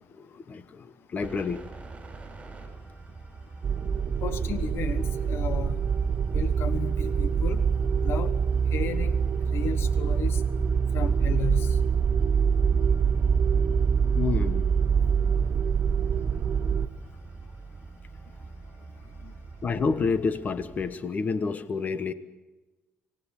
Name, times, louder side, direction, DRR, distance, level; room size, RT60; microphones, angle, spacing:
voice 1, 0.1-1.6 14.1-14.7 19.6-22.1, left 4 dB, 40° left, 12 dB, 1.3 m, -29 dB
sound 1, 1.2-20.9, right 3 dB, 25° right, 6.5 m, -44 dB
sound 2, 3.6-16.9, right 6 dB, 45° right, 1.4 m, -25 dB
voice 2, 4.2-5.8 6.3-7.6 8.0-8.4 8.7-9.1 9.5-10.4 10.9-11.8 19.2-19.3, left 7 dB, 70° left, 12 dB, 1.1 m, -34 dB
26.5 x 18.5 x 7.3 m, 1.2 s
cardioid pair, 105°, 4 cm